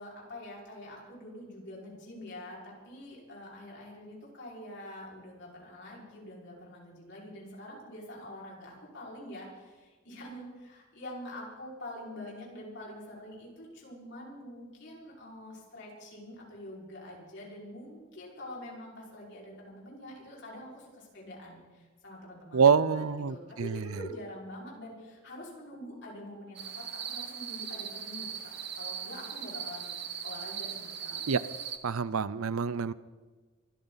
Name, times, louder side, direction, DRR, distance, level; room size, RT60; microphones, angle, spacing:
voice 1, 0.0-30.0 30.2-31.2, left 1 dB, 55° left, -3 dB, 5.4 m, -45 dB
voice 2, 22.5-24.0 31.3-31.4 31.8-32.9, right 6 dB, 80° right, 17 dB, 0.6 m, -26 dB
sound 1, 26.6-31.8, right 8 dB, 50° right, 1.4 m, -39 dB
24.5 x 13.5 x 4.1 m, 1.4 s
head